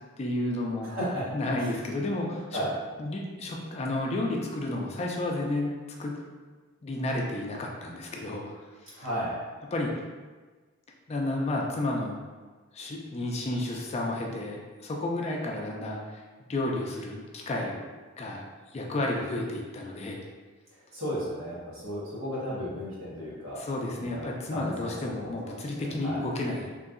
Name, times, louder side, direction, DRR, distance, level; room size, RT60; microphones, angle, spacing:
voice 1, 0.2-0.9 1.3-2.6 3.0-5.7 6.0-6.2 6.8-8.6 8.8-9.1 9.7-9.9 11.1-12.2 12.7-16.2 16.5-17.8 18.2-18.4 18.7-20.2 23.6-26.7, left 1 dB, 30° left, 0 dB, 0.3 m, -31 dB
voice 2, 0.8-1.2 1.5-2.0 2.5-2.7 8.9-9.4 20.9-23.6 23.9-26.2, equal, 70° right, -8 dB, 1.1 m, -35 dB
3.0 x 2.6 x 2.4 m, 1.4 s
head